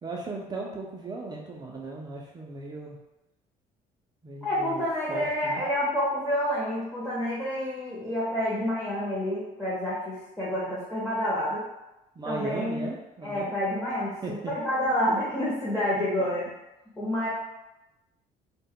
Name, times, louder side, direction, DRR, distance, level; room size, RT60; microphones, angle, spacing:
voice 1, 0.0-3.0 4.2-5.6 12.2-13.5 14.2-14.5 16.0-16.1, right 3 dB, 25° right, -2 dB, 0.3 m, -37 dB
voice 2, 4.4-11.6 12.3-12.9 13.2-16.5 17.0-17.3, equal, 5° left, -8 dB, 0.7 m, -28 dB
2.1 x 2.0 x 3.5 m, 0.96 s
cardioid pair, 110°, 17 cm